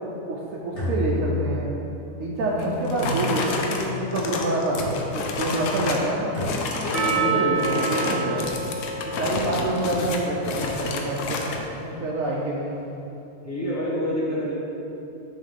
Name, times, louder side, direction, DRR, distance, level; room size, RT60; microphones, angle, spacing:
voice 1, 0.3-1.7 2.2-4.8 5.1-6.4 7.1-8.5 9.0-11.5 11.8-12.8, right 2 dB, 85° right, -3 dB, 1.1 m, -27 dB
sound 1, 0.7-1.9 3.0-3.8 4.8-5.4 6.3-7.0, left 1 dB, 60° left, 2.0 m, -30 dB
sound 2, 2.6-6.1 6.4-7.2 7.5-11.6, left 3 dB, 75° left, 1.0 m, -30 dB
voice 2, 6.7-7.8 9.3-9.6 13.4-14.5, equal, 10° left, -8 dB, 1.3 m, -28 dB
Percussion, 6.9-11.9, right 5 dB, 45° right, 0.5 m, -30 dB
6.4 x 2.9 x 5.2 m, 2.9 s
omnidirectional pair, 1.4 m